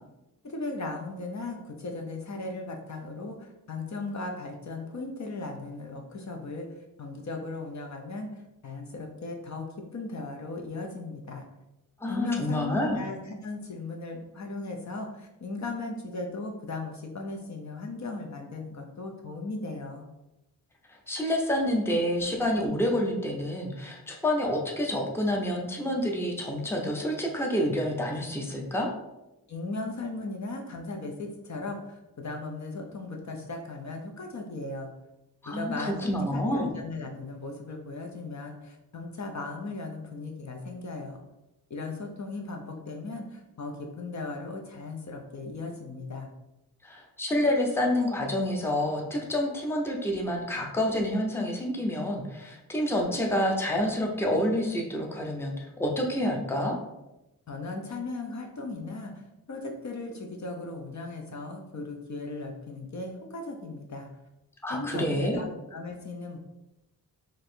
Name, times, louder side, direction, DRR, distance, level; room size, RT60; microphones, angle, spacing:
voice 1, 0.4-11.5 12.1-20.1 29.5-34.9 35.5-41.2 41.7-46.3 57.5-59.2 59.5-64.1 64.7-66.4, left 3 dB, 50° left, 2 dB, 0.6 m, -37 dB
voice 2, 12.0-13.0 20.9-28.9 35.4-36.7 46.8-56.8 64.6-65.4, left 1 dB, 5° left, 0 dB, 0.6 m, -28 dB
3.0 x 2.6 x 4.3 m, 0.94 s
wide cardioid pair, 90°, 36 cm